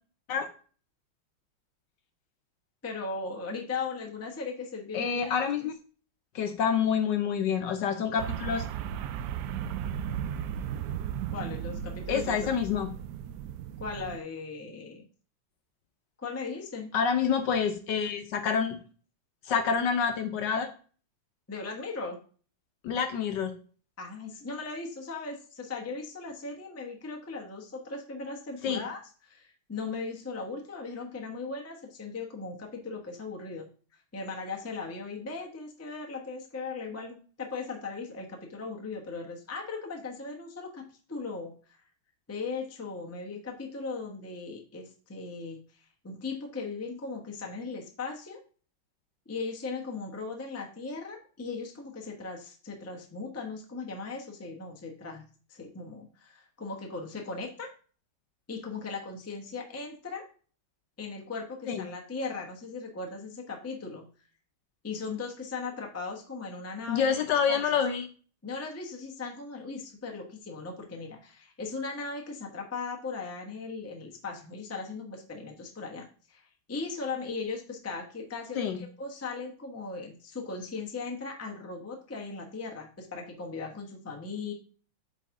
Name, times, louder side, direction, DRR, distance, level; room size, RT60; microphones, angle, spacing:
voice 1, 2.8-5.7 11.3-12.3 13.8-15.0 16.2-16.9 21.5-22.2 24.0-33.7 34.1-41.5 42.3-48.4 49.3-55.2 55.5-57.7 58.5-60.2 61.0-64.0 64.8-67.2 67.5-67.6 68.4-84.5, left 4 dB, 15° left, 1 dB, 0.6 m, -38 dB
voice 2, 4.9-5.7 6.3-8.6 12.1-12.9 16.9-18.8 19.4-20.7 22.8-23.5 28.6-28.8 61.7-61.9 66.9-68.1 78.5-78.8, left 7 dB, 70° left, 6 dB, 1.2 m, -27 dB
sound 1, 8.2-14.2, right 9 dB, 80° right, 0.9 m, -35 dB
8.0 x 4.2 x 3.6 m, 0.40 s
omnidirectional pair, 2.3 m